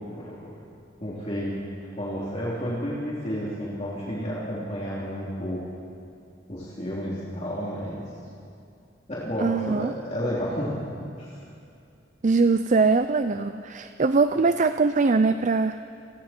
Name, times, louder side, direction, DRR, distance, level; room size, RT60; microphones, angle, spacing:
voice 1, 0.1-0.5 1.0-1.6 2.0-5.6 6.5-8.0 9.1-10.8 11.1-11.4, equal, 35° left, -7 dB, 3.3 m, -31 dB
voice 2, 9.4-9.9 12.2-15.8, right 4 dB, 40° right, 10 dB, 0.5 m, -22 dB
29.0 x 22.0 x 4.5 m, 2.5 s
head